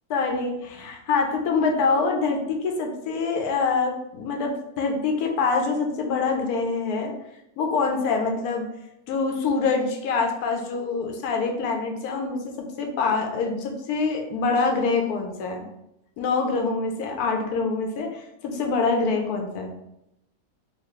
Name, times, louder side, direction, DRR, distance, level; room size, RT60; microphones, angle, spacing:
voice 1, 0.1-7.1 7.6-8.7 9.1-15.7 16.2-19.7, left 4 dB, 90° left, 3 dB, 1.1 m, -25 dB
4.1 x 2.3 x 3.1 m, 0.84 s
omnidirectional pair, 1.6 m